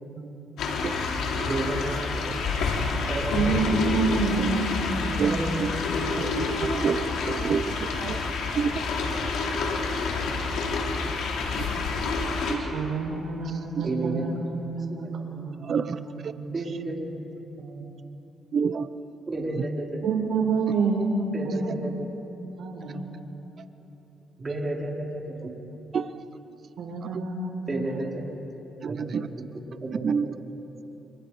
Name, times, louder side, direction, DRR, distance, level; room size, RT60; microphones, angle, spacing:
sound 1, 0.6-12.6, left 4 dB, 80° left, 3.6 m, -28 dB
voice 1, 1.4-2.4 3.1-3.7 5.2-5.6 13.8-14.3 15.0-15.1 16.5-17.2 19.3-20.0 21.3-22.0 24.4-25.5 27.7-28.2 28.9-29.1 29.7-30.3, right 2 dB, 30° right, -2 dB, 5.1 m, -32 dB
voice 2, 3.3-6.1 12.7-16.7 17.1-17.2 17.6-17.8 20.0-21.1 21.4-21.9 22.6-23.1 26.8-28.0 28.8-29.1, right 4 dB, 70° right, 2 dB, 5.2 m, -29 dB
voice 3, 5.2-5.7 6.2-8.7 12.5-12.7 15.6-16.3 18.5-18.9 19.6-19.7 25.9-26.2 28.8-29.3 30.0-30.4, right 6 dB, 50° right, 12 dB, 0.8 m, -28 dB
30.0 x 29.0 x 5.2 m, 2.9 s
cardioid pair, 90°, 0 cm